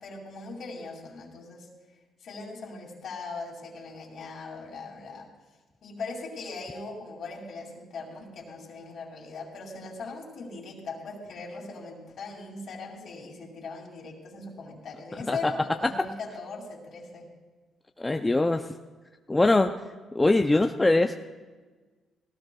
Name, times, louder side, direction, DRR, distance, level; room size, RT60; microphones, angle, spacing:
voice 1, 0.0-1.7 2.2-5.3 5.8-17.3, left 3 dB, 65° left, -1 dB, 2.6 m, -40 dB
voice 2, 18.0-18.7 19.3-19.7 20.1-21.2, left 2 dB, 15° left, 5 dB, 0.5 m, -22 dB
18.0 x 17.5 x 2.3 m, 1.3 s
cardioid pair, 90°, 0 cm